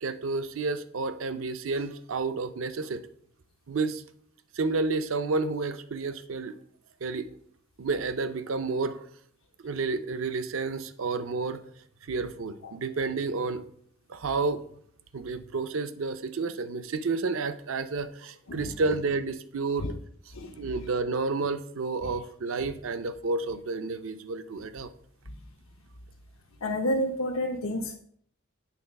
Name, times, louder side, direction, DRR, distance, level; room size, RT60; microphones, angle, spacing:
voice 1, 0.0-3.0 3.7-4.0 4.5-6.6 7.0-7.3 7.8-9.0 9.6-11.6 12.1-13.6 14.1-14.6 15.1-19.9 20.4-24.9, right 3 dB, 70° right, 11 dB, 0.5 m, -30 dB
voice 2, 26.6-28.0, left 1 dB, 85° left, 1 dB, 0.7 m, -29 dB
8.3 x 3.9 x 5.3 m, 0.63 s
head